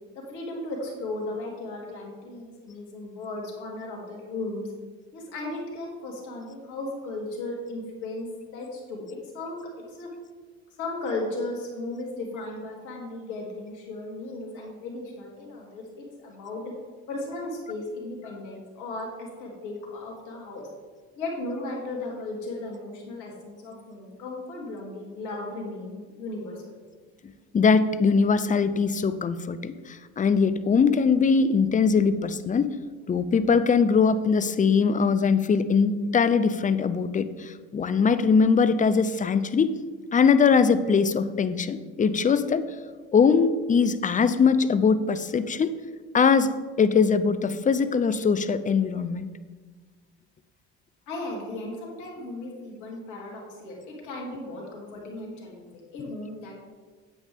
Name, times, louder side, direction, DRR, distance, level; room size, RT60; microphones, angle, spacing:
voice 1, 0.1-4.7 5.1-8.3 8.5-9.0 9.3-9.6 9.9-10.1 10.8-16.6 17.1-20.6 21.2-26.7 51.1-56.5, left 2 dB, 70° left, -2 dB, 3.1 m, -36 dB
voice 2, 27.5-32.7 33.1-39.7 40.1-42.7 43.1-45.7 46.1-49.3, left 5 dB, 25° left, 13 dB, 0.6 m, -22 dB
9.4 x 8.1 x 3.6 m, 1.4 s
hypercardioid pair, 70°, 31 cm